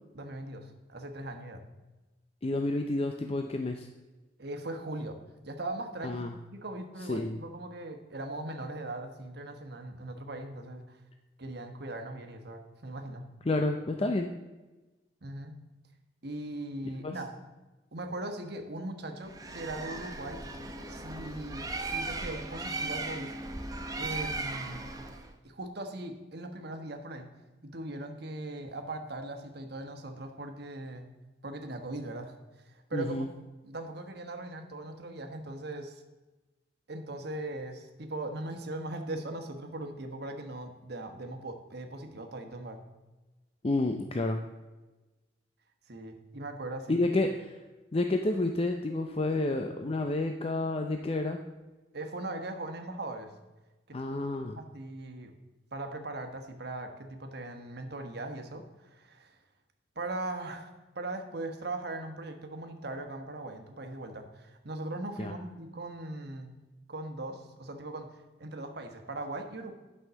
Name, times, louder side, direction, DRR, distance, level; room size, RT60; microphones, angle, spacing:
voice 1, 0.1-1.7 4.4-5.2 5.4-6.2 6.5-11.0 11.4-13.3 15.2-15.6 16.2-17.3 17.9-20.4 20.9-23.4 24.0-24.8 25.4-27.3 27.6-31.1 31.4-33.2 33.6-36.0 36.9-42.8 45.9-47.0 51.9-53.3 53.9-54.0 54.5-55.3 55.7-59.4 59.9-60.7 60.9-66.5 66.9-69.7, right 2 dB, 60° right, 5 dB, 1.2 m, -39 dB
voice 2, 2.4-3.9 6.0-6.3 7.1-7.4 13.5-14.3 17.0-17.1 32.9-33.3 43.6-44.4 46.9-47.5 47.9-51.4 53.9-54.6 65.2-65.3, left 2 dB, 30° left, 5 dB, 0.5 m, -29 dB
Bird, 19.3-25.3, right 2 dB, 20° right, 0.8 m, -37 dB
11.0 x 5.6 x 6.9 m, 1.1 s
head